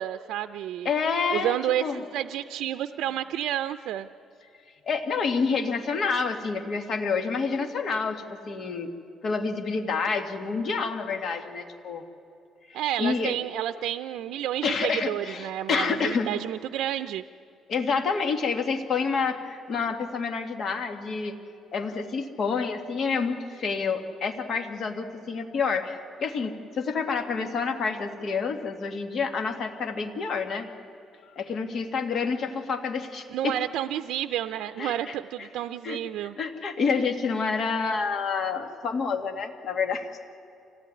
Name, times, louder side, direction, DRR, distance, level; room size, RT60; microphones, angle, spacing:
voice 1, 0.0-0.9 1.3-4.1 12.7-17.2 33.3-36.4, right 12 dB, 80° right, 10 dB, 0.6 m, -30 dB
voice 2, 0.8-2.0 4.8-8.9 9.2-12.0 13.0-13.3 14.6-16.3 17.7-21.4 21.7-30.7 31.4-33.5 34.8-34.9 35.8-40.1, left 5 dB, 45° left, 5 dB, 2.2 m, -28 dB
26.0 x 17.0 x 9.9 m, 2.5 s
cardioid pair, 140°, 0 cm